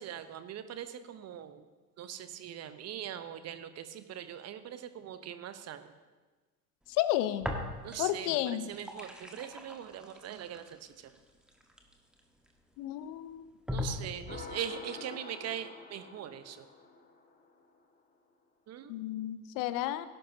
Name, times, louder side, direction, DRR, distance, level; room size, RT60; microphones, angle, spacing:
voice 1, 0.0-1.6 2.0-5.9 7.8-11.1 13.7-16.7 18.7-18.9, right 10 dB, 30° right, 11 dB, 0.9 m, -41 dB
voice 2, 6.9-7.5 8.0-8.7 12.8-13.5 18.9-20.1, left 14 dB, 45° left, 13 dB, 0.7 m, -32 dB
sound 1, 7.4-8.2 8.5-12.5 13.1-13.2 13.7-14.6, left 1 dB, ahead, 1.4 m, -40 dB
sound 2, 14.3-17.7, left 4 dB, 20° left, 1.7 m, -48 dB
17.0 x 11.0 x 2.8 m, 1.3 s
figure-of-eight pair, 75°, 48 cm